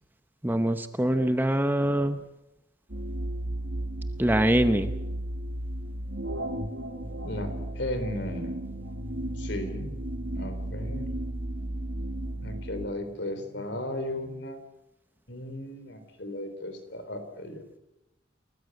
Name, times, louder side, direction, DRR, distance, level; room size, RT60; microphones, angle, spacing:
voice 1, 0.4-2.2 4.2-4.9, right 1 dB, 10° right, 9 dB, 0.8 m, -24 dB
sound 1, 2.9-12.9, right 1 dB, 70° right, 2.3 m, -34 dB
voice 2, 7.2-8.6 9.4-9.9 10.3-11.1 12.4-14.6 15.3-17.6, left 1 dB, 65° left, 8 dB, 3.9 m, -35 dB
29.5 x 14.5 x 7.9 m, 0.90 s
head